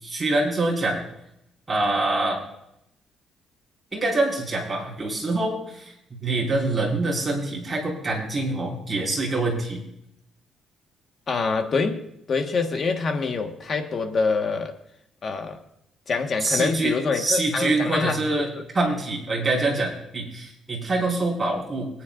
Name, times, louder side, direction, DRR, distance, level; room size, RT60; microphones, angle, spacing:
voice 1, 0.0-1.0 1.7-2.4 3.9-5.9 6.2-9.8 16.4-21.9, right 2 dB, 15° right, -3 dB, 5.5 m, -25 dB
voice 2, 11.3-14.8 15.2-15.6 16.1-18.4, left 4 dB, 40° left, 5 dB, 1.5 m, -25 dB
25.0 x 9.5 x 2.6 m, 0.79 s
cardioid pair, 135°, 0 cm